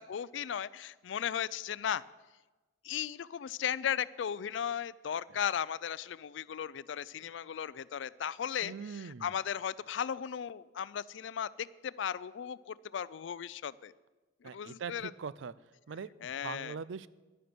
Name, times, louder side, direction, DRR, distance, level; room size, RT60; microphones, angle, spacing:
voice 1, 0.0-2.0 2.8-13.9 14.4-15.1 16.2-16.8, left 8 dB, 70° left, 19 dB, 0.4 m, -36 dB
voice 2, 8.6-9.3 14.4-15.5 15.9-17.1, right 6 dB, 85° right, 18 dB, 0.4 m, -42 dB
11.0 x 10.0 x 6.1 m, 1.2 s
head